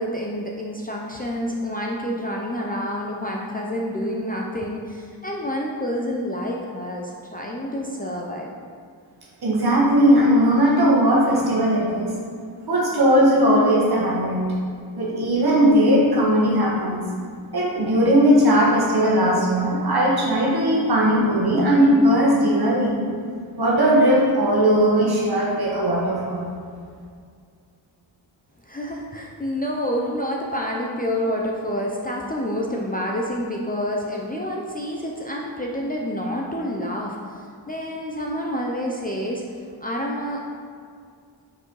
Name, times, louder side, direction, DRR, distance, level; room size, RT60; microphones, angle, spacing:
voice 1, 0.0-8.5 28.6-39.4 39.8-40.4, equal, 20° left, -2 dB, 0.5 m, -28 dB
voice 2, 9.4-12.1 12.7-14.5 15.0-17.0 17.5-23.0 23.6-26.4, equal, 55° right, -5 dB, 1.7 m, -18 dB
6.1 x 4.7 x 4.7 m, 2.2 s
wide cardioid pair, 160°, 46 cm